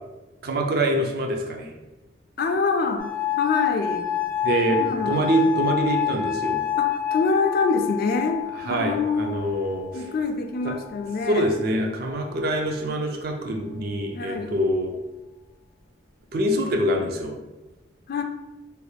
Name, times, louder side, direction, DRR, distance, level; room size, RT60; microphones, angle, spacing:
voice 1, 0.4-1.7 4.4-6.6 8.7-10.1 10.6-10.7 11.3-14.9 16.3-17.3, right 1 dB, 50° right, 2 dB, 0.4 m, -25 dB
voice 2, 2.4-3.1 3.4-4.1 4.7-5.3 6.8-9.4 9.9-11.5 14.1-14.6 18.1-18.2, left 4 dB, 45° left, 5 dB, 0.3 m, -25 dB
sound 1, 3.0-9.9 10.8-11.3, left 11 dB, 65° right, 1.2 m, -28 dB
3.3 x 2.3 x 3.1 m, 1.1 s
head